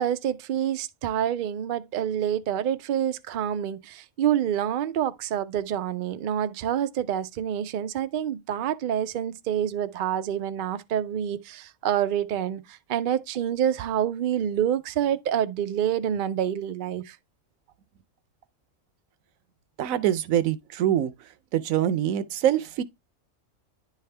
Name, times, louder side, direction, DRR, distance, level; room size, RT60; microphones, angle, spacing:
voice 1, 0.0-17.2, right 10 dB, 55° right, 0.5 m, -27 dB
voice 2, 19.8-21.1 21.5-22.8, right 11 dB, 90° right, 1.0 m, -24 dB
10.5 x 3.5 x 3.3 m
omnidirectional pair, 1.4 m